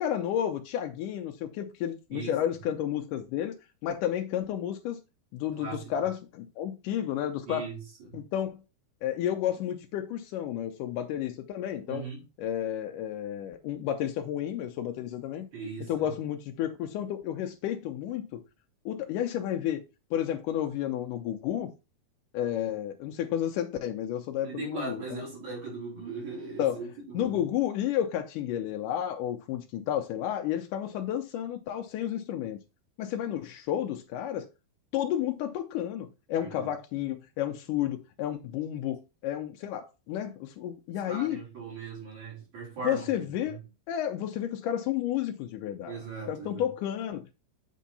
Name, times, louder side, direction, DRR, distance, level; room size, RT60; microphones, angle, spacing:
voice 1, 0.0-3.5 3.8-5.0 5.3-7.7 8.1-8.6 9.0-12.0 12.4-15.5 15.9-18.4 18.9-19.8 20.1-21.7 22.3-25.2 26.6-26.8 27.1-32.6 33.0-34.5 34.9-41.4 42.8-43.6 43.9-46.0 46.3-47.2, left 11 dB, 90° left, 1.8 m, -31 dB
voice 2, 5.6-6.0 7.5-8.2 11.9-12.3 15.5-16.1 24.4-27.4 36.3-36.7 41.1-43.1 43.4-43.6 45.9-46.7, right 4 dB, 45° right, 4.8 m, -39 dB
8.4 x 4.5 x 4.1 m
omnidirectional pair, 4.5 m